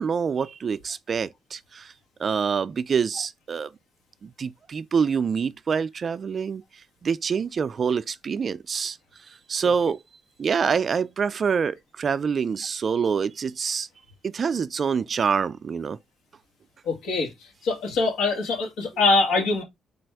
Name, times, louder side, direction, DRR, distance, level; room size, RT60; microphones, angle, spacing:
voice 1, 0.0-1.9 2.2-3.7 4.2-6.6 7.0-9.0 9.5-10.0 10.4-13.9 14.2-16.0, right 6 dB, 45° right, 0.4 m, -26 dB
voice 2, 16.9-17.3 17.6-19.6, left 3 dB, 85° left, 1.8 m, -23 dB
4.1 x 2.6 x 4.5 m
cardioid pair, 90°, 0 cm